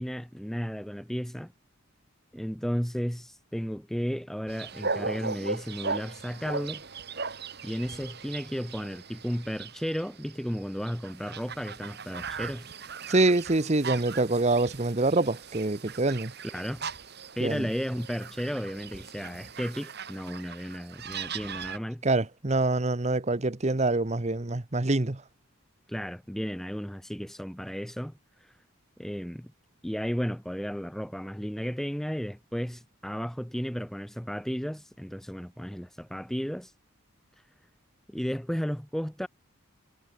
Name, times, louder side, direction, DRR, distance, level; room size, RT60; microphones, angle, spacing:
voice 1, 0.0-1.5 2.3-6.8 7.6-12.7 16.4-16.9 17.4-22.0 25.9-28.5 29.0-29.5 29.8-36.7 38.1-39.3, equal, ahead, 0.6 m, -34 dB
sound 1, 4.5-21.8, right 5 dB, 50° right, 2.4 m, -38 dB
voice 2, 13.1-16.3 17.4-17.7 22.0-25.2, right 2 dB, 35° right, 1.0 m, -25 dB
head